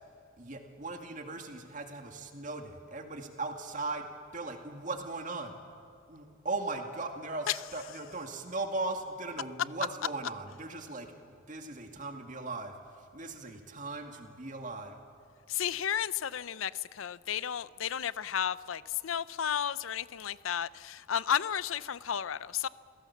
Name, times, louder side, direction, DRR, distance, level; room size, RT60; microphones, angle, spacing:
voice 1, 0.4-4.1 4.3-5.5 6.1-11.1 11.5-12.7 13.1-15.0, right 3 dB, 40° right, 2.2 m, -38 dB
voice 2, 15.5-22.7, left 9 dB, 85° left, 0.5 m, -33 dB
27.5 x 17.5 x 7.2 m
head